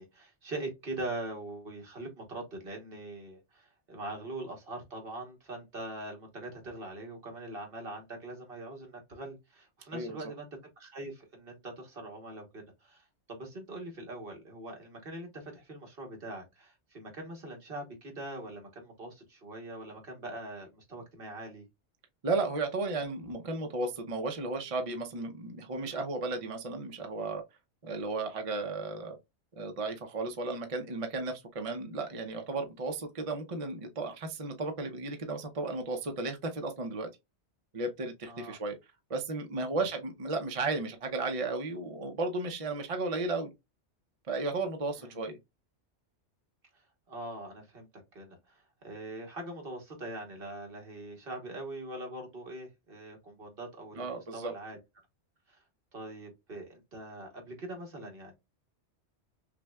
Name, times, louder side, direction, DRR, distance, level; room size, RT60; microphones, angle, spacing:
voice 1, 0.0-10.5 10.8-21.6 38.3-38.6 45.0-45.2 47.1-54.8 55.5-55.6 55.9-58.4, right 2 dB, 55° right, 1.5 m, -42 dB
voice 2, 9.9-10.2 22.2-27.4 27.8-29.2 29.6-37.1 37.7-38.8 39.1-43.5 44.3-45.3 54.0-54.5, right 3 dB, 40° right, 0.6 m, -34 dB
5.9 x 2.2 x 2.3 m
omnidirectional pair, 1.2 m